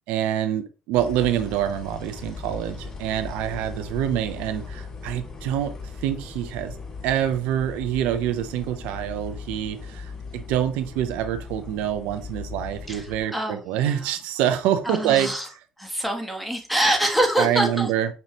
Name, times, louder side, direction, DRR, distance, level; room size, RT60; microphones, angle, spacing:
voice 1, 0.1-5.7 6.0-6.7 7.0-15.3 17.4-18.1, right 11 dB, 85° right, 0.5 m, -26 dB
sound 1, 0.9-13.2, left 4 dB, 30° left, 2.0 m, -38 dB
voice 2, 12.9-14.1 14.8-15.5 15.8-17.9, right 1 dB, ahead, 1.3 m, -25 dB
5.4 x 2.7 x 2.9 m
supercardioid pair, 80°, 2 cm